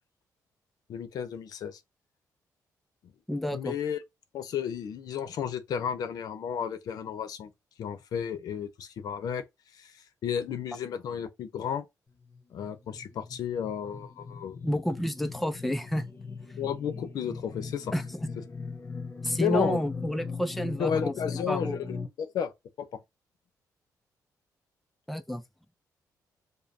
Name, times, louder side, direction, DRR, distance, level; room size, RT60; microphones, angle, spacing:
voice 1, 0.9-1.8 3.0-3.1 3.5-4.0 4.3-7.5 7.8-9.4 9.7-11.9 12.5-14.7 16.6-17.9 19.4-19.8 20.8-22.5 22.8-23.0, left 8 dB, 70° left, 0.7 m, -33 dB
voice 2, 3.3-3.7 14.6-16.1 17.9-18.0 19.2-21.1 21.5-21.8 25.1-25.4, equal, ahead, 0.5 m, -30 dB
sound 1, 12.3-22.1, left 4 dB, 35° left, 1.0 m, -39 dB
5.1 x 2.2 x 2.7 m
cardioid pair, 110°, 7 cm